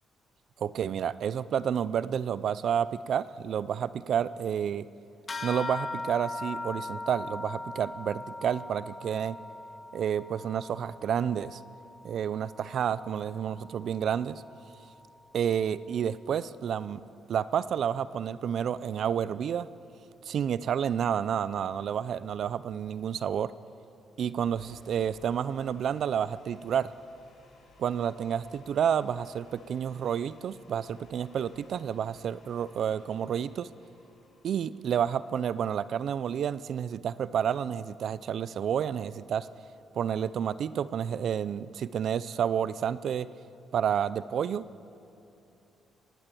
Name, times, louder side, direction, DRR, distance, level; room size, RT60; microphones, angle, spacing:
voice 1, 0.6-4.9 5.4-9.4 9.9-11.6 12.0-14.4 15.3-17.0 17.3-19.7 20.3-23.5 24.2-26.9 27.8-33.7 34.4-39.5 39.9-43.3 43.7-44.6, right 8 dB, 65° right, 17 dB, 0.5 m, -30 dB
sound 1, 5.3-15.1, left 2 dB, 35° left, 2.4 m, -41 dB
sound 2, 24.3-36.5, left 3 dB, 65° left, 6.0 m, -59 dB
21.5 x 17.0 x 8.5 m, 2.8 s
cardioid pair, 90°, 0 cm